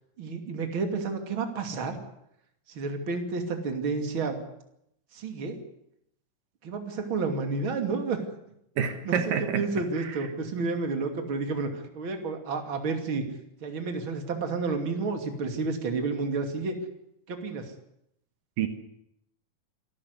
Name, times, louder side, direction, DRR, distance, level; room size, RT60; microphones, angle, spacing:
voice 1, 0.2-2.0 2.7-4.4 5.1-5.6 6.6-8.2 9.0-9.1 9.4-13.2 13.6-16.8 17.3-17.7, right 4 dB, 40° right, 5 dB, 3.2 m, -30 dB
voice 2, 8.8-9.6 10.0-10.2 18.6-18.7, right 8 dB, 75° right, 8 dB, 3.1 m, -28 dB
26.5 x 13.5 x 9.7 m, 0.78 s
omnidirectional pair, 3.9 m